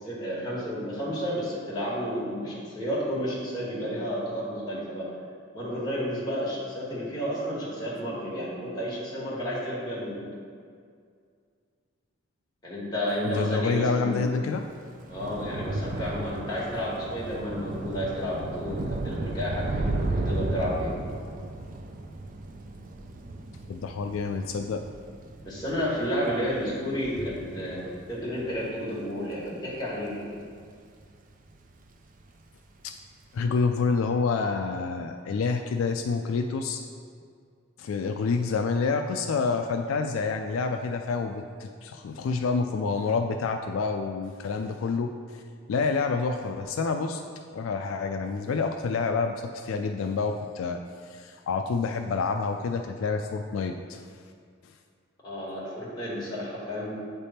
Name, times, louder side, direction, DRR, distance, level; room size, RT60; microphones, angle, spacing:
voice 1, 0.0-5.1 5.5-10.3 12.6-14.2 15.1-20.9 25.4-30.3 55.2-56.9, equal, 20° left, -7 dB, 1.5 m, -31 dB
voice 2, 13.2-14.6 23.7-24.8 33.3-36.8 37.8-45.1 45.7-47.2 47.5-50.8 51.1-54.0, left 4 dB, 70° left, 5 dB, 0.3 m, -28 dB
Thunder / Rain, 14.6-31.2 31.5-31.9 32.2-32.4, right 2 dB, 40° right, 0.4 m, -35 dB
8.1 x 3.4 x 4.2 m, 2.2 s
head